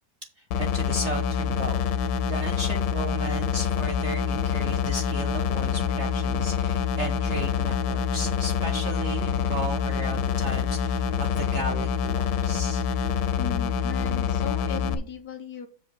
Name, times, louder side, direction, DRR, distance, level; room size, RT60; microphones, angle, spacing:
voice 1, 0.4-12.9, right 2 dB, 55° right, 5 dB, 0.7 m, -35 dB
sound 1, 0.5-14.9, left 7 dB, 90° left, 1.5 m, -26 dB
voice 2, 13.3-15.7, left 8 dB, 65° left, 8 dB, 1.1 m, -37 dB
6.5 x 4.9 x 6.0 m, 0.40 s
omnidirectional pair, 2.1 m